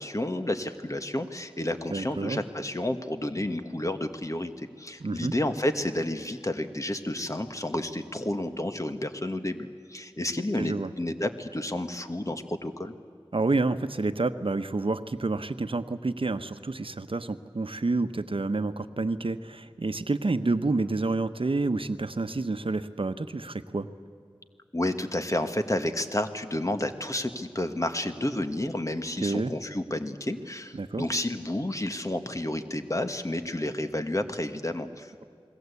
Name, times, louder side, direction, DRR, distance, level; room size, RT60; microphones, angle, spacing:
voice 1, 0.0-12.9 24.7-35.2, left 1 dB, 35° left, 7 dB, 1.7 m, -31 dB
voice 2, 1.9-2.4 5.0-5.3 10.6-10.9 13.3-23.9 29.2-29.5 30.8-31.1, right 3 dB, 65° right, 10 dB, 1.0 m, -29 dB
29.0 x 21.0 x 8.3 m, 2.3 s
wide cardioid pair, 45°, 10 cm